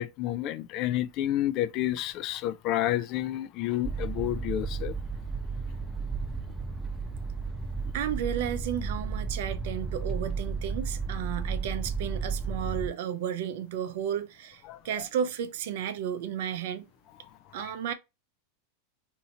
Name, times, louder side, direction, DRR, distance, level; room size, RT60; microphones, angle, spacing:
voice 1, 0.0-4.9 14.7-14.8, left 13 dB, 50° left, 0.4 m, -30 dB
sound 1, 3.8-12.9, right 4 dB, 10° right, 0.6 m, -33 dB
voice 2, 7.9-16.9 17.5-17.9, right 9 dB, 70° right, 0.5 m, -33 dB
2.8 x 2.7 x 2.7 m
hypercardioid pair, 110°, 0 cm